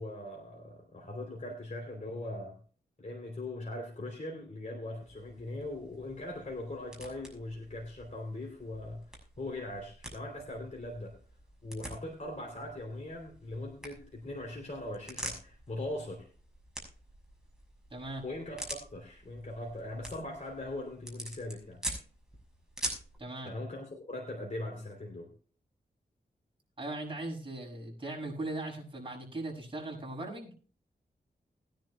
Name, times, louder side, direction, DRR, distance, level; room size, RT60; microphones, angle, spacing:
voice 1, 0.0-2.6 3.0-9.0 9.4-11.2 11.6-16.3 18.2-21.8 23.4-25.3, left 1 dB, 45° left, 0 dB, 3.2 m, -40 dB
sound 1, 5.0-23.2, right 1 dB, 5° right, 6.2 m, -46 dB
voice 2, 17.9-18.2 23.2-23.5 26.8-30.5, right 2 dB, 30° right, -2 dB, 6.6 m, -39 dB
21.0 x 10.5 x 2.2 m, 0.40 s
cardioid pair, 70°, 18 cm